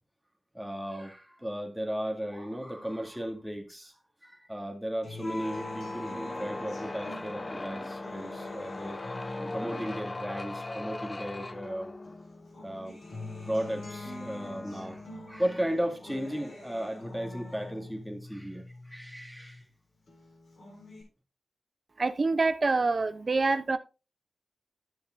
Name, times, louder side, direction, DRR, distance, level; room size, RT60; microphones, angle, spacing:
voice 1, 0.5-9.0 9.4-11.9 12.6-13.0 13.5-19.6, equal, ahead, 2.1 m, -35 dB
Acoustic guitar, 5.0-11.7 12.0-19.7 20.1-21.0, left 2 dB, 75° left, 3.7 m, -46 dB
sound 1, 5.1-15.5, left 2 dB, 35° left, 0.6 m, -39 dB
voice 2, 22.0-23.8, right 3 dB, 50° right, 0.7 m, -26 dB
13.0 x 6.9 x 2.5 m
cardioid pair, 60°, 0 cm